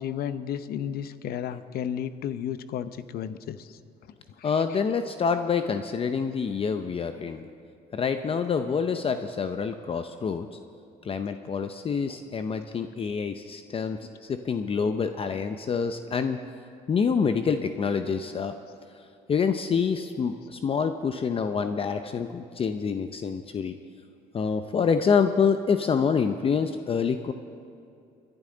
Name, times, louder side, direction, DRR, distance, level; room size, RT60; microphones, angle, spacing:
voice 1, 0.0-3.8 4.4-4.8 12.1-12.2 14.0-14.1, left 9 dB, 65° left, 12 dB, 0.8 m, -33 dB
voice 2, 4.4-7.5 7.9-10.6 11.0-16.4 16.9-18.5 19.3-23.8 24.3-27.3, left 6 dB, 35° left, 8 dB, 0.6 m, -27 dB
26.5 x 11.0 x 3.9 m, 2.6 s
cardioid pair, 110°, 17 cm